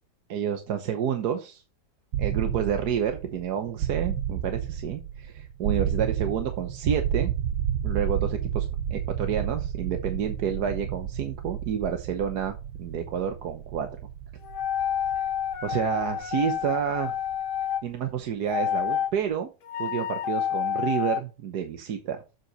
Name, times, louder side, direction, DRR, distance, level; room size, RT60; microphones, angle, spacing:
voice 1, 0.3-1.6 2.2-7.3 7.8-13.9 15.6-17.2 17.8-19.5 19.8-22.2, right 8 dB, 65° right, 7 dB, 1.4 m, -29 dB
sound 1, 2.1-18.0, right 9 dB, 80° right, 1.6 m, -31 dB
sound 2, 14.4-17.8 18.5-19.1 19.6-21.2, left 10 dB, 55° left, 1.0 m, -29 dB
8.0 x 7.6 x 4.0 m, 0.30 s
omnidirectional pair, 2.0 m